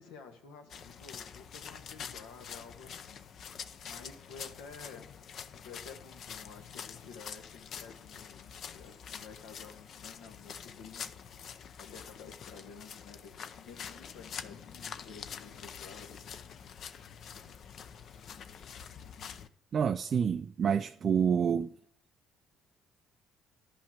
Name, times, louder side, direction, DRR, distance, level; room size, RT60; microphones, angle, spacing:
voice 1, 0.0-3.2 3.8-5.1 5.6-11.2 11.8-16.4 17.3-17.7, left 5 dB, 90° left, 1.6 m, -51 dB
sound 1, 0.7-19.5, left 7 dB, 55° left, 0.6 m, -46 dB
voice 2, 19.7-21.7, right 7 dB, 45° right, 0.4 m, -28 dB
10.5 x 5.7 x 7.3 m
supercardioid pair, 85°, 0 cm